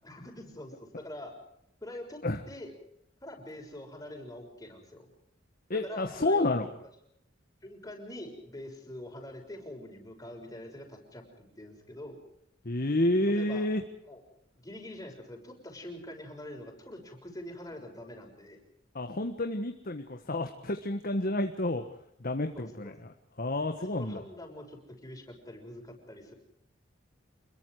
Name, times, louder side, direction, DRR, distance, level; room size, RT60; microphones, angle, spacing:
voice 1, 0.0-1.3 1.8-2.2 2.5-2.7 3.2-5.1 5.7-6.5 7.6-12.2 13.2-13.7 14.0-14.2 14.6-18.6 22.5-22.9 23.9-26.3, left 1 dB, 20° left, 1 dB, 6.3 m, -44 dB
voice 2, 5.7-6.7 12.6-13.8 18.9-21.8 22.2-24.2, left 1 dB, 50° left, 5 dB, 1.6 m, -30 dB
27.5 x 22.0 x 4.9 m, 0.73 s
head